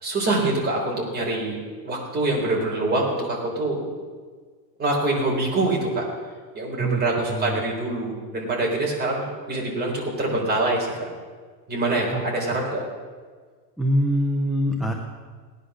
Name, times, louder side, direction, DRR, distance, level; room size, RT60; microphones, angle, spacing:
voice 1, 0.0-1.6 1.8-3.9 4.8-6.0 6.5-11.1 11.7-12.8, right 2 dB, 20° right, -2 dB, 4.1 m, -25 dB
voice 2, 7.3-7.6 12.1-12.2 13.8-14.9, right 1 dB, ahead, 0 dB, 0.3 m, -23 dB
18.0 x 10.5 x 6.2 m, 1.5 s
supercardioid pair, 155°, 48 cm